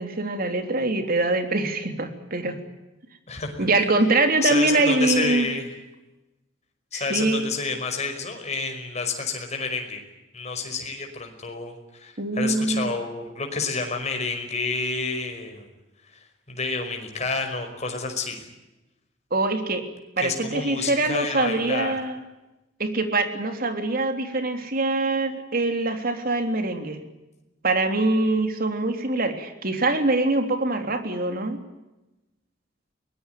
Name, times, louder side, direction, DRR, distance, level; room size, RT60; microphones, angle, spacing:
voice 1, 0.0-2.6 3.6-5.5 6.9-7.5 12.2-12.9 19.3-19.8 20.2-22.2 22.8-27.0 27.6-31.6, right 2 dB, 50° right, 6 dB, 3.4 m, -24 dB
voice 2, 3.3-3.7 4.4-5.7 6.9-10.0 10.3-15.7 16.1-18.5 20.2-21.9, left 4 dB, 35° left, 4 dB, 5.4 m, -29 dB
23.5 x 19.5 x 9.3 m, 1.0 s
head